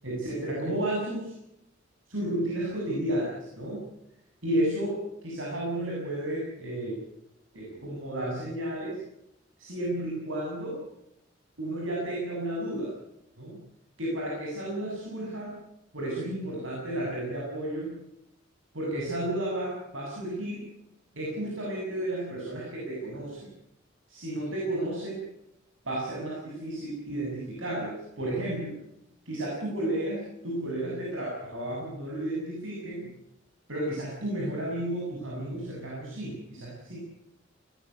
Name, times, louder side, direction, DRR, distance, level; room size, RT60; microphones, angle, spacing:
voice 1, 0.0-1.3 2.1-3.8 4.4-7.0 7.5-9.0 9.6-10.8 11.6-12.9 13.4-13.6 14.0-15.6 15.9-17.9 18.7-20.7 21.1-23.5 24.1-25.2 25.8-28.8 29.3-33.1 33.7-37.0, right 1 dB, 80° right, -4 dB, 7.7 m, -32 dB
20.0 x 15.5 x 9.7 m, 0.82 s
head